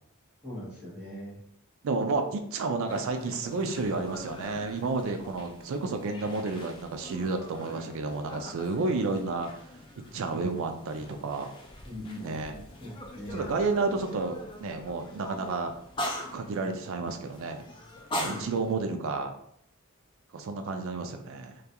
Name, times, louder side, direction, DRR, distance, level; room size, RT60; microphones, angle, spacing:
voice 1, 0.4-1.4 11.8-13.5 18.2-18.4, equal, ahead, -14 dB, 0.9 m, -41 dB
voice 2, 1.8-9.7 10.1-11.5 12.2-12.5 13.3-15.8 16.3-17.6 18.1-19.3 20.3-21.6, right 3 dB, 60° right, 5 dB, 0.4 m, -31 dB
sound 1, 2.9-18.7, left 1 dB, 20° left, 0.3 m, -42 dB
2.3 x 2.3 x 2.7 m, 0.68 s
head